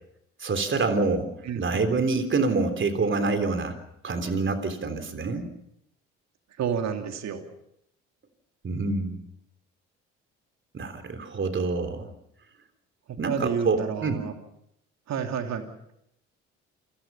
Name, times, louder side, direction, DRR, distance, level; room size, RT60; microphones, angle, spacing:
voice 1, 0.4-3.8 4.0-5.5 8.6-9.2 10.7-12.1 13.2-14.3, right 3 dB, 35° right, 8 dB, 3.5 m, -26 dB
voice 2, 1.5-2.3 6.6-7.4 13.3-14.3 15.1-15.7, right 7 dB, 50° right, 5 dB, 3.1 m, -30 dB
28.5 x 22.0 x 5.7 m, 0.77 s
figure-of-eight pair, 50°, 35 cm